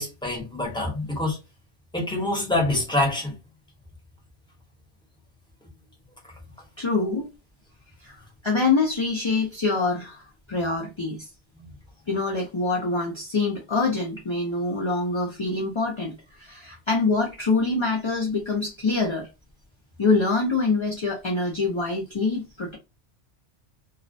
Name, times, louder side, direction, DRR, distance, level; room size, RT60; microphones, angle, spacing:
voice 1, 0.0-1.4 1.9-3.3 11.6-11.7, left 2 dB, 5° left, 0.8 m, -26 dB
voice 2, 6.8-7.3 8.0-10.2 10.5-11.3 12.1-19.3 20.0-22.8, left 3 dB, 40° left, 0.4 m, -25 dB
2.3 x 2.1 x 2.6 m
omnidirectional pair, 1.2 m